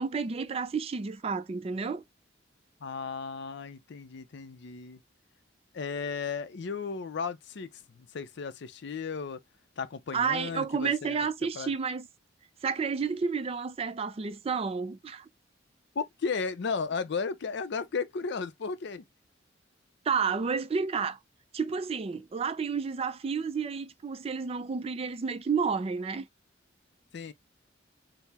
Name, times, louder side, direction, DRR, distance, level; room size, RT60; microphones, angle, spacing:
voice 1, 0.0-2.0 10.1-12.1 12.6-15.3 20.1-21.2 21.5-26.3, right 5 dB, 30° right, 0.3 m, -31 dB
voice 2, 2.8-5.0 5.7-9.4 9.8-11.2 11.5-11.7 16.0-19.0 27.1-27.3, left 5 dB, 60° left, 0.5 m, -35 dB
4.5 x 2.0 x 3.4 m
head